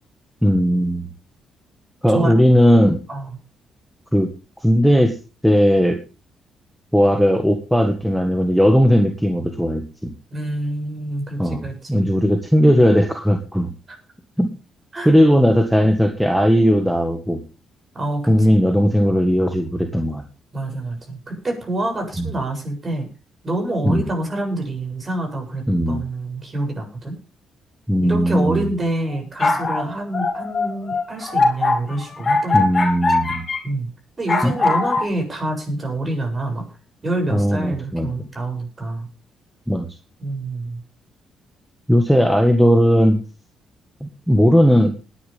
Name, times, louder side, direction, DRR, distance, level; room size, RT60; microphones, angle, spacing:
voice 1, 0.4-1.1 2.0-3.0 4.1-4.3 4.6-5.2 5.4-6.0 6.9-10.1 11.4-13.7 14.4-14.5 15.0-17.4 18.3-20.2 22.2-22.3 23.8-24.0 25.7-26.0 27.9-28.7 32.5-33.5 34.4-34.6 37.3-38.1 39.7-39.9 41.9-43.2 44.0-44.9, equal, ahead, 5 dB, 1.7 m, -17 dB
voice 2, 10.3-12.1 14.9-15.1 17.9-18.3 20.5-23.1 23.4-27.1 28.0-32.7 33.6-33.9 34.2-36.7 37.0-39.1 40.2-40.8, right 2 dB, 30° right, 3 dB, 7.6 m, -26 dB
sound 1, 29.1-33.6 34.3-35.1, left 3 dB, 35° left, 3.0 m, -21 dB
20.0 x 10.0 x 3.6 m, 0.33 s
cardioid pair, 90°, 0 cm